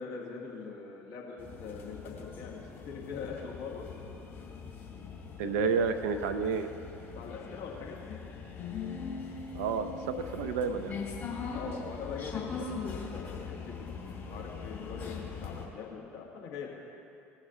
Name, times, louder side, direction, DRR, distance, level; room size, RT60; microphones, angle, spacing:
voice 1, 0.0-2.6 2.9-3.9 7.2-8.2 11.5-13.9 14.3-16.7, left 5 dB, 55° left, -2 dB, 1.8 m, -42 dB
sound 1, 1.4-15.6, left 5 dB, 35° left, 2.6 m, -41 dB
voice 2, 5.4-6.7 9.5-11.0, right 5 dB, 65° right, 9 dB, 0.5 m, -30 dB
18.5 x 6.2 x 4.0 m, 2.7 s
figure-of-eight pair, 60°, 8 cm